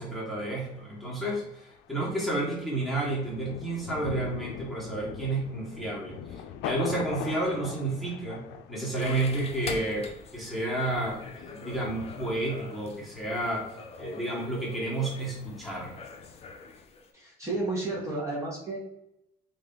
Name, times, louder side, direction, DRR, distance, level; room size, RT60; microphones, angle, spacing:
voice 1, 0.0-8.4 8.7-10.1 10.3-13.7 14.0-15.9, right 2 dB, ahead, -5 dB, 1.3 m, -31 dB
Thunder, 0.7-16.9, left 8 dB, 90° left, 0.4 m, -43 dB
sound 1, 9.0-17.1, left 4 dB, 35° left, 0.5 m, -45 dB
voice 2, 17.1-18.8, right 2 dB, 15° right, -6 dB, 1.2 m, -32 dB
3.2 x 2.6 x 3.6 m, 0.82 s
cardioid pair, 110°, 17 cm